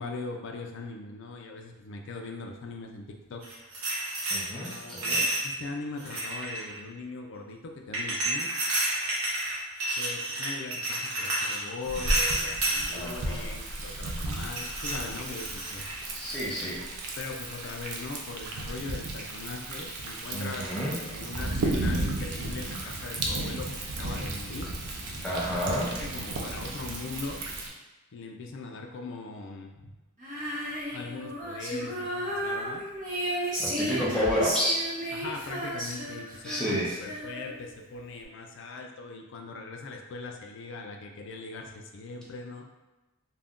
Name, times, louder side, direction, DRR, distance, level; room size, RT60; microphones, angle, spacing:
voice 1, 0.0-3.4 4.5-8.5 10.0-15.9 17.2-24.7 25.7-27.4 28.1-29.9 30.9-32.9 33.9-34.2 35.1-42.6, left 3 dB, 55° left, 3 dB, 0.3 m, -40 dB
sound 1, 3.4-5.5 6.0-6.7 7.9-12.9 14.5-16.0 16.3-16.6, right 1 dB, 75° right, 0.9 m, -30 dB
voice 2, 4.3-5.2 12.9-13.5 16.1-16.8 20.3-21.0 25.2-25.9 33.6-34.8 36.4-36.9, equal, 5° left, -7 dB, 0.6 m, -30 dB
Thunder, 11.8-27.7, right 2 dB, 90° right, 0.5 m, -34 dB
Female singing, 30.2-37.7, right 1 dB, 35° right, 0.7 m, -33 dB
2.4 x 2.1 x 3.5 m, 1.1 s
head